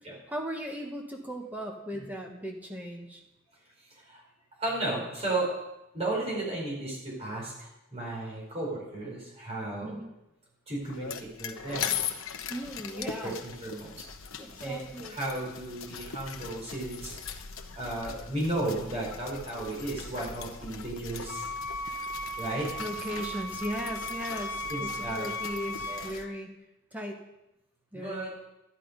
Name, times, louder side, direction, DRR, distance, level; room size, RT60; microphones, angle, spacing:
voice 1, 0.3-3.2 9.8-10.1 12.5-13.4 14.4-15.2 22.8-26.5 26.9-27.2 27.9-28.2, equal, 10° right, 1 dB, 1.4 m, -37 dB
voice 2, 3.8-4.2 4.6-5.5 5.9-10.0 10.7-12.0 13.2-14.0 14.6-14.8 15.1-17.1 17.7-21.5 21.8-22.0 22.4-22.7 24.7-25.3 25.9-26.1 27.9-28.3, right 2 dB, 30° right, -4 dB, 4.4 m, -34 dB
sound 1, 10.8-26.3, left 7 dB, 75° left, 1.0 m, -40 dB
Wind instrument woodwind instrument, 21.2-26.2, equal, 45° left, 0.9 m, -36 dB
12.5 x 10.5 x 5.2 m, 0.90 s
head